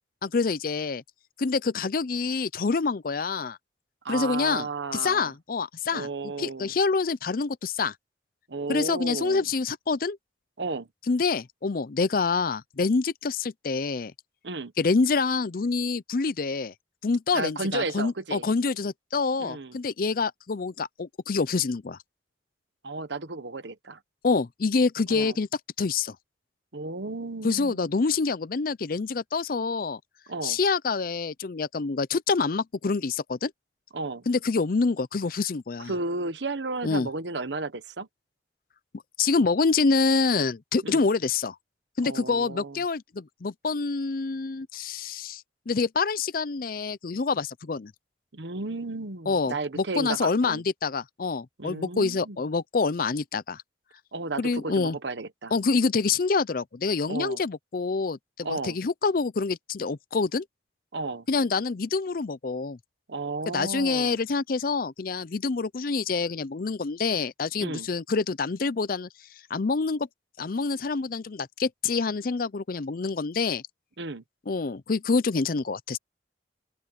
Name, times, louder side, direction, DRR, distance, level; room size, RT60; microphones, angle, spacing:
voice 1, 0.2-1.0 1.4-3.6 4.1-7.9 8.7-10.2 11.1-14.1 14.8-16.7 17.0-22.0 24.2-25.5 25.8-26.2 27.4-30.0 30.4-33.5 34.3-35.9 36.8-37.1 39.2-41.6 42.0-47.9 49.3-53.6 54.4-55.0 55.5-60.4 61.3-62.8 63.5-69.1 69.5-70.1 70.4-73.6 74.5-76.0, left 4 dB, 50° left, 0.5 m, -26 dB
voice 2, 4.0-5.3 5.9-6.7 8.5-9.4 10.6-10.9 14.4-14.7 17.3-18.4 19.4-19.8 22.8-24.0 25.1-25.3 26.7-27.8 30.3-30.6 33.9-34.2 35.9-38.1 40.8-41.1 42.0-42.8 48.3-50.6 51.6-52.4 54.1-55.5 57.1-57.4 58.4-58.8 60.9-61.3 63.1-64.2 67.6-67.9 74.0-74.2, right 3 dB, 85° right, 1.2 m, -33 dB
open air
head